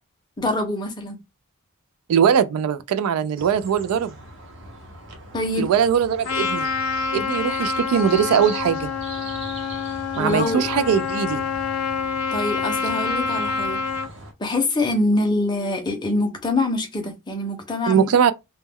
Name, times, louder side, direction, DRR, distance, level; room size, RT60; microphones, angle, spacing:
voice 1, 0.4-1.2 5.3-5.7 10.2-10.7 12.3-13.8 14.4-18.1, left 2 dB, 20° left, 0.5 m, -24 dB
voice 2, 2.1-4.1 5.6-6.7 7.1-8.9 10.2-11.4 17.9-18.3, right 8 dB, 80° right, 0.3 m, -20 dB
sound 1, 3.4-14.3, right 2 dB, 55° right, 0.7 m, -40 dB
Trumpet, 6.2-14.1, left 5 dB, 80° left, 0.5 m, -27 dB
2.1 x 2.1 x 3.4 m
head